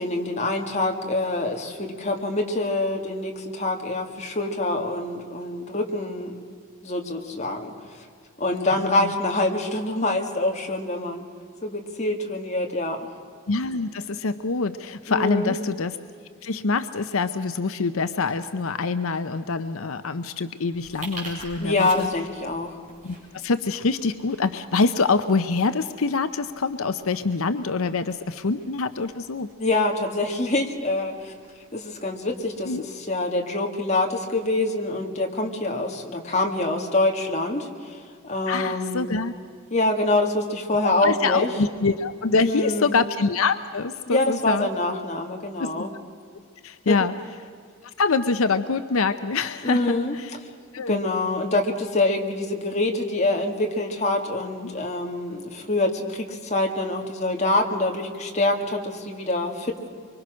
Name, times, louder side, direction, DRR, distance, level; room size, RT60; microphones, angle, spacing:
voice 1, 0.0-6.3 6.8-8.1 8.4-11.3 11.6-13.1 15.1-15.5 21.6-22.8 29.6-31.3 31.7-39.2 39.7-41.5 42.4-43.1 44.1-45.9 46.9-47.0 49.6-50.1 50.4-50.5 50.9-59.9, left 2 dB, 30° left, 1 dB, 2.0 m, -25 dB
voice 2, 8.7-9.1 13.5-16.0 16.4-22.1 23.0-29.5 32.6-32.8 38.5-39.3 40.8-44.7 45.6-45.7 46.6-47.1 48.0-50.4 50.7-51.0 54.6-54.7, left 4 dB, 80° left, 10 dB, 0.7 m, -25 dB
sound 1, 20.7-32.8, right 1 dB, 35° right, 6.6 m, -47 dB
24.5 x 24.5 x 6.3 m, 2.2 s
head